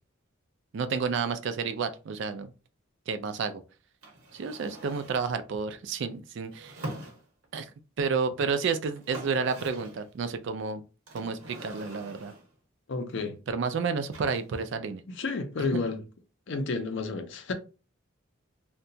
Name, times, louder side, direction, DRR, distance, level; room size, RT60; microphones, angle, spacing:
voice 1, 0.7-2.5 3.1-3.6 4.3-6.8 7.5-7.7 8.0-10.8 11.1-12.3 13.5-15.0 15.7-15.8, right 5 dB, 55° right, 0.3 m, -30 dB
sound 1, 4.0-5.3 6.5-7.6 8.6-8.7 8.9-10.1 11.1-12.6 14.1-14.8, right 1 dB, 80° right, 0.9 m, -43 dB
voice 2, 12.9-13.4 15.1-16.0 16.5-17.5, left 3 dB, 55° left, 0.5 m, -31 dB
2.7 x 2.2 x 2.6 m
head